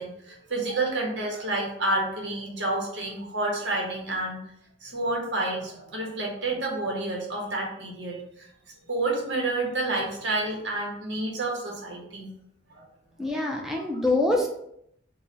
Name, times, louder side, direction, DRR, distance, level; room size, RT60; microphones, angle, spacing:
voice 1, 0.0-4.4 4.8-8.5 8.9-12.3 12.7-12.8 13.3-13.4 13.8-14.0, right 2 dB, 70° right, -1 dB, 1.0 m, -29 dB
voice 2, 13.2-14.5, left 2 dB, ahead, -1 dB, 0.4 m, -25 dB
3.2 x 2.2 x 4.1 m, 0.73 s
head